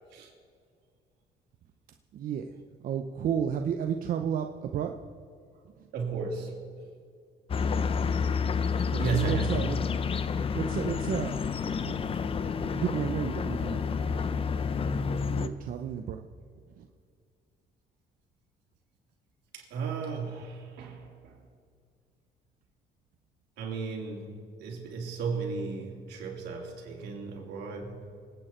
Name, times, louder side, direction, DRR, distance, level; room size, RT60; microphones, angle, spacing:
voice 1, 2.1-2.4 2.8-5.0 5.8-5.9 8.9-9.8 10.5-11.4 11.8-12.1 12.6-14.6 15.4-16.2 16.8-16.9, right 8 dB, 55° right, 5 dB, 0.8 m, -32 dB
voice 2, 5.9-6.7 9.0-9.5 10.5-10.6 19.5-21.4 23.6-28.1, right 5 dB, 80° right, 0 dB, 3.1 m, -35 dB
sound 1, 7.5-15.5, left 6 dB, 35° left, 0.7 m, -29 dB
26.5 x 9.0 x 4.5 m, 2.2 s
cardioid pair, 110°, 17 cm